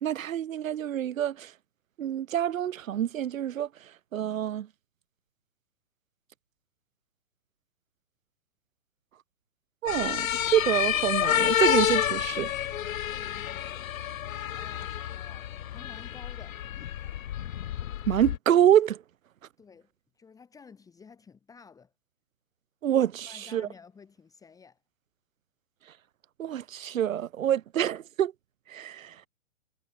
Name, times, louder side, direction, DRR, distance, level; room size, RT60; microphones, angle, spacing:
voice 1, 0.0-1.5 2.0-3.7 4.1-4.7 9.8-12.5 18.1-19.0 22.8-23.1 23.5-23.7 26.4-28.3 28.7-29.1, right 10 dB, 85° right, 0.8 m, -26 dB
sound 1, 9.9-18.4, left 11 dB, 85° left, 0.7 m, -29 dB
voice 2, 13.1-13.9 14.6-16.6 19.6-19.9 20.1-21.9 22.8-24.8, left 5 dB, 10° left, 2.4 m, -52 dB
hypercardioid pair, 150°, 39 cm